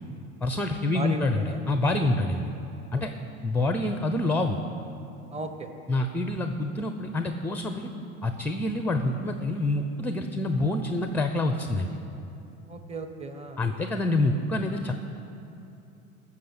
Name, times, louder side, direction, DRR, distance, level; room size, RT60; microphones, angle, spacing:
voice 1, 0.4-2.5 2.9-3.1 3.4-4.6 5.9-7.9 8.2-11.9 13.6-14.9, left 2 dB, 5° left, 6 dB, 0.6 m, -27 dB
voice 2, 0.9-1.6 2.9-3.0 5.3-5.7 12.7-13.6, right 2 dB, 15° right, 6 dB, 1.1 m, -36 dB
14.5 x 6.4 x 7.9 m, 2.9 s
hypercardioid pair, 90°, 42 cm